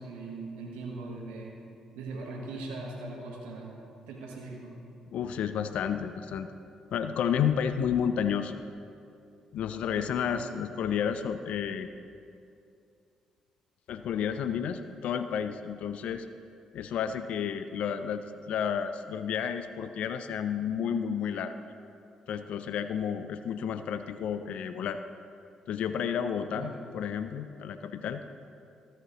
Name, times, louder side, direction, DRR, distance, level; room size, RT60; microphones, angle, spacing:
voice 1, 0.0-1.6 1.9-3.8 4.1-4.7 10.2-10.5 26.5-26.7, right 3 dB, 85° right, -2 dB, 1.1 m, -40 dB
voice 2, 5.1-6.5 6.9-8.5 9.5-11.9 13.9-16.3 16.7-21.5 22.3-25.0 25.7-28.2, left 8 dB, 70° left, 10 dB, 0.4 m, -31 dB
13.5 x 8.9 x 3.0 m, 2.5 s
hypercardioid pair, 50°, 2 cm